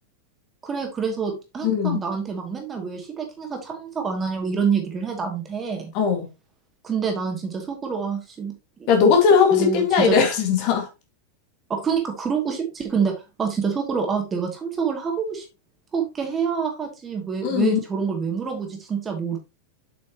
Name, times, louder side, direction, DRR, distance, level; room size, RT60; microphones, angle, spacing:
voice 1, 0.6-5.9 6.8-8.5 8.8-9.1 9.5-10.2 11.7-13.1 13.4-15.4 15.9-19.4, right 6 dB, 20° right, 2.4 m, -27 dB
voice 2, 1.6-2.0 5.9-6.3 8.9-10.9 17.4-17.8, left 6 dB, 45° left, 2.0 m, -19 dB
7.8 x 6.1 x 2.9 m
figure-of-eight pair, 90°, 0 cm